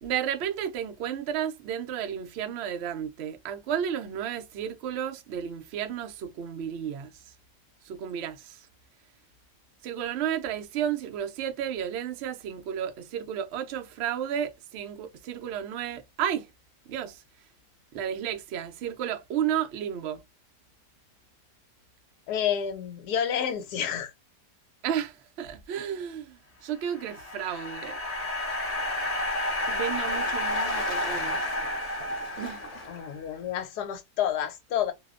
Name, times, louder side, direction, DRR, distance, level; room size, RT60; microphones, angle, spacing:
voice 1, 0.0-7.3 7.8-8.7 9.8-16.5 16.9-17.2 17.9-20.2 24.8-28.0 29.7-31.5 32.4-32.6, right 9 dB, 80° right, 0.6 m, -32 dB
voice 2, 22.3-24.1 32.9-34.9, left 9 dB, 75° left, 1.2 m, -29 dB
sound 1, 26.8-33.1, left 1 dB, 30° left, 0.9 m, -31 dB
Waves surf, 27.8-33.5, left 3 dB, 60° left, 1.0 m, -43 dB
2.8 x 2.0 x 2.3 m
omnidirectional pair, 1.8 m